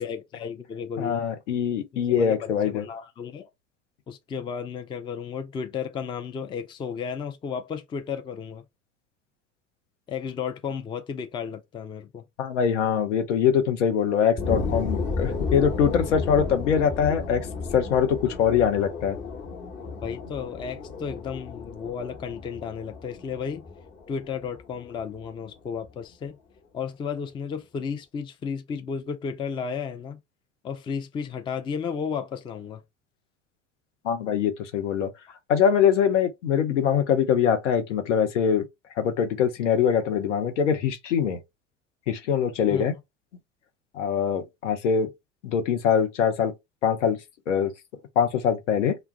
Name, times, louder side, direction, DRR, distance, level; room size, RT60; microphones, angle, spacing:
voice 1, 0.0-1.2 1.9-3.5 4.1-8.6 10.1-12.2 20.0-23.6 24.1-26.4 26.7-30.2 30.6-32.8 42.7-42.9, left 6 dB, 15° left, 0.4 m, -33 dB
voice 2, 1.0-2.8 12.4-17.5 17.7-19.2 34.0-35.1 35.5-38.6 39.0-41.4 42.1-42.9 43.9-45.1 45.4-46.5 46.8-47.2 47.5-47.7 48.2-49.0, left 7 dB, 75° left, 0.7 m, -23 dB
sound 1, 14.4-25.4 25.9-26.0, left 4 dB, 30° left, 1.0 m, -33 dB
2.2 x 2.0 x 3.7 m
figure-of-eight pair, 70°, 37 cm